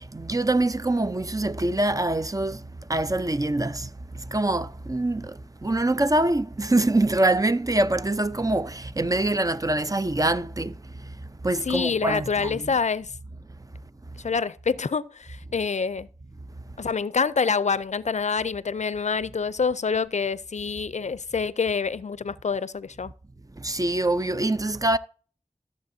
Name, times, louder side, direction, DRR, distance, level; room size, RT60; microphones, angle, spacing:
voice 1, 0.0-2.6 2.9-3.9 4.3-5.3 5.6-10.7 11.4-12.7 23.6-25.0, right 2 dB, 30° right, 0.5 m, -24 dB
voice 2, 11.7-13.1 14.2-16.1 16.8-23.1, left 5 dB, 70° left, 0.4 m, -26 dB
13.5 x 7.2 x 2.7 m
wide cardioid pair, 50°, 12 cm